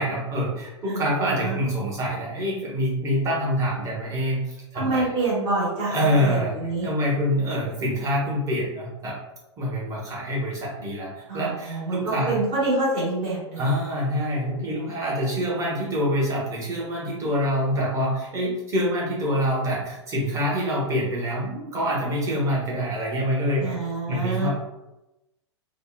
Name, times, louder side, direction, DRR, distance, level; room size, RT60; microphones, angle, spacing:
voice 1, 0.0-5.1 5.9-6.5 6.8-9.1 9.6-12.3 13.6-23.7 24.1-24.5, equal, 20° right, -5 dB, 0.8 m, -26 dB
voice 2, 0.8-1.6 4.7-6.9 11.3-13.6 23.6-24.5, right 2 dB, 45° right, -7 dB, 1.3 m, -27 dB
2.7 x 2.0 x 2.2 m, 0.96 s
figure-of-eight pair, 100°, 15 cm